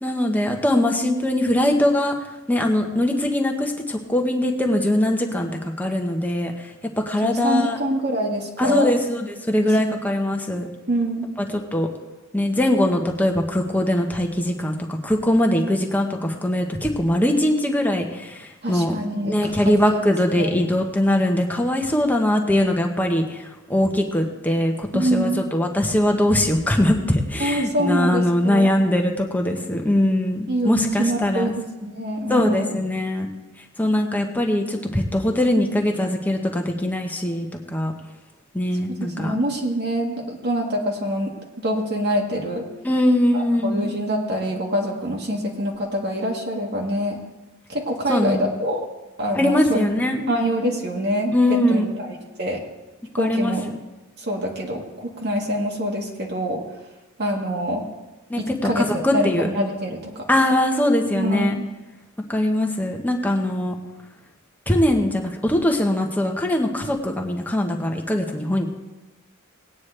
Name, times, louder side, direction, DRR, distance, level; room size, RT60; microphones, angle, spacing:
voice 1, 0.0-2.2 2.5-6.7 7.0-7.8 8.6-10.7 11.4-11.9 12.3-18.9 19.2-31.5 32.3-33.3 33.8-37.9 38.5-39.3 42.8-43.9 48.1-48.5 49.4-50.3 51.3-51.9 53.1-53.5 58.3-59.5 60.3-61.5 62.3-63.8 64.7-68.6, left 1 dB, 10° left, 1 dB, 1.2 m, -21 dB
voice 2, 7.2-8.9 9.8-10.0 10.9-11.3 18.6-19.5 19.9-20.0 20.4-20.5 24.9-25.4 27.4-28.7 30.5-32.7 39.0-41.3 41.6-42.6 43.3-47.2 47.7-48.8 49.2-49.9 50.3-52.6 53.2-53.6 54.2-56.6 57.2-57.8 58.4-60.3 61.2-61.7, equal, 50° right, -1 dB, 1.8 m, -25 dB
18.5 x 9.5 x 3.3 m, 1.1 s
head